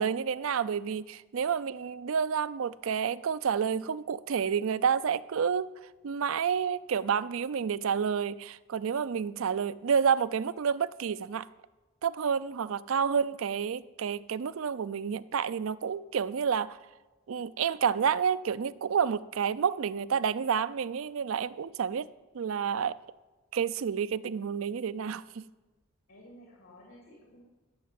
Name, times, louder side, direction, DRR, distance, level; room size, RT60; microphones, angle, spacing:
voice 1, 0.0-5.7 6.0-11.5 12.0-16.8 17.3-22.1 22.3-23.0 23.5-25.5, right 7 dB, 70° right, 0.4 m, -29 dB
voice 2, 9.4-9.8 26.1-27.4, equal, 75° left, 2.7 m, -54 dB
12.0 x 7.2 x 7.6 m
head